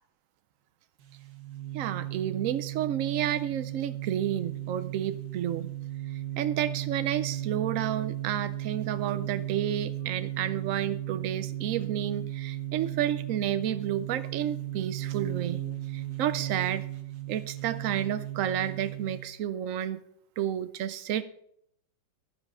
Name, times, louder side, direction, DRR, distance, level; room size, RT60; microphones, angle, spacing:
sound 1, 1.0-19.3, right 14 dB, 60° right, 1.6 m, -35 dB
voice 1, 1.7-5.7 6.1-15.6 15.9-16.9 17.3-20.0 20.4-21.2, right 10 dB, 90° right, 13 dB, 0.7 m, -31 dB
13.0 x 7.2 x 5.4 m, 0.72 s
omnidirectional pair, 2.0 m